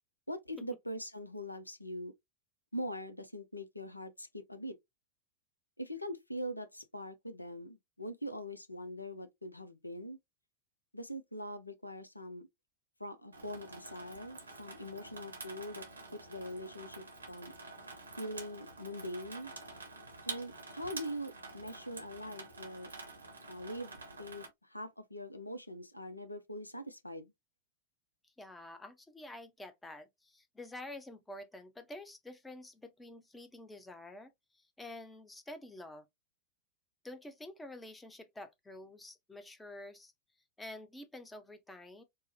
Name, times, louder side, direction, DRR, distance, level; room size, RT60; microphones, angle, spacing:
voice 1, 0.3-2.1 2.7-4.7 5.8-10.2 10.9-12.5 13.0-15.9 16.3-17.5 18.2-19.5 20.3-22.9 23.5-27.3, equal, 85° left, 0.5 m, -42 dB
Water tap faucet / Sink (filling or washing), 13.3-24.5, right 3 dB, 75° right, 0.8 m, -48 dB
voice 2, 28.2-36.1 37.0-40.1 40.6-42.0, left 1 dB, 10° left, 0.6 m, -49 dB
4.6 x 2.1 x 2.8 m
figure-of-eight pair, 90°, 0 cm